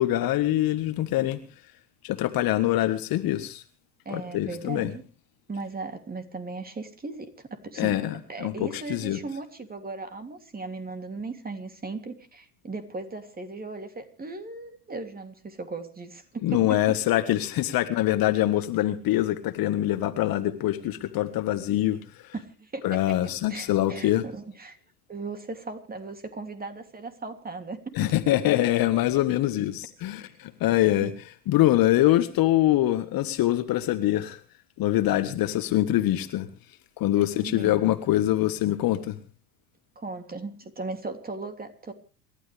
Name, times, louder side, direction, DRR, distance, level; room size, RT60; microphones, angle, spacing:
voice 1, 0.0-1.4 2.0-3.6 4.1-4.9 7.8-9.2 16.4-22.0 22.8-24.2 27.9-31.1 31.5-34.4 34.8-36.5 37.0-39.2, left 14 dB, 45° left, 11 dB, 1.6 m, -24 dB
voice 2, 4.0-5.0 5.5-8.0 8.3-16.9 22.3-23.2 23.5-24.8 25.1-28.1 31.0-31.1 37.1-37.8 39.9-41.9, right 3 dB, 20° right, 7 dB, 3.0 m, -37 dB
27.5 x 12.5 x 3.5 m, 0.36 s
hypercardioid pair, 80°, 47 cm